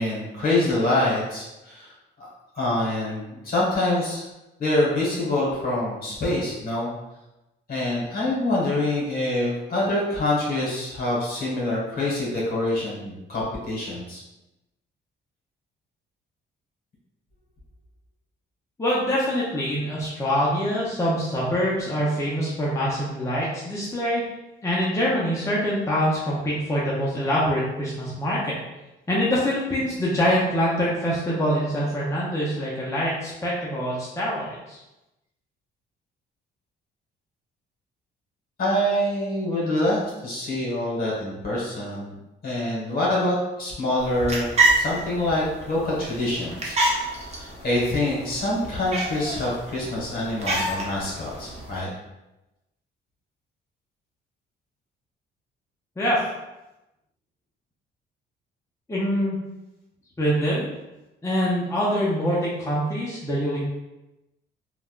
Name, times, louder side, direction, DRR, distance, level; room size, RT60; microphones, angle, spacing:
voice 1, 0.0-1.9 2.2-2.3 2.5-4.3 4.6-6.9 7.7-14.2 38.6-42.1 42.4-51.9, left 1 dB, 50° left, -4 dB, 1.3 m, -25 dB
voice 2, 18.8-24.2 24.6-28.6 29.1-34.8 56.0-56.2 58.9-59.4 60.2-60.7 61.2-63.6, equal, 15° left, -7 dB, 0.6 m, -24 dB
sound 1, 44.0-51.8, right 2 dB, 30° right, 0.8 m, -28 dB
3.2 x 2.2 x 2.4 m, 0.98 s
cardioid pair, 90°, 20 cm